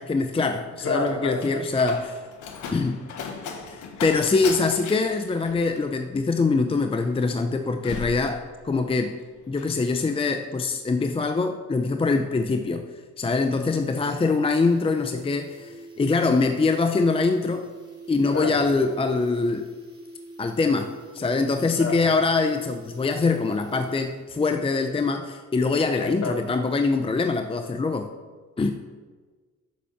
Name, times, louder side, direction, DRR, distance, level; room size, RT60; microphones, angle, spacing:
voice 1, 0.0-2.2 2.7-3.0 3.7-9.2 9.5-12.9 13.2-17.7 18.1-19.7 20.4-28.1 28.6-28.7, left 3 dB, 20° left, 7 dB, 0.6 m, -24 dB
Slam, 0.5-9.0 9.3-9.8, left 5 dB, 85° left, 1.2 m, -38 dB
voice 2, 0.8-1.6 18.3-18.6 21.8-22.1 26.0-26.4, left 3 dB, 45° left, 4 dB, 1.6 m, -29 dB
sound 1, 12.8-12.9 13.2-13.3 13.6-24.4 24.7-24.8, right 3 dB, 20° right, 2.5 m, -44 dB
7.3 x 7.0 x 7.1 m, 1.4 s
cardioid pair, 90°, 30 cm